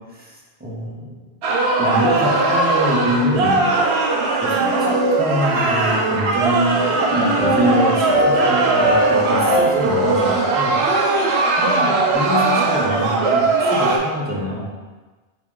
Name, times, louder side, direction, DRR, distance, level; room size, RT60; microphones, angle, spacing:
voice 1, 0.6-1.2 1.8-3.7 4.4-6.8 7.1-10.8 11.6-14.7, equal, 10° right, -5 dB, 0.5 m, -25 dB
sound 1, 1.4-14.0, right 3 dB, 85° right, 0.9 m, -19 dB
sound 2, 5.8-7.0 7.4-12.0, equal, 25° left, 0.7 m, -24 dB
3.1 x 2.9 x 3.6 m, 1.3 s
omnidirectional pair, 1.1 m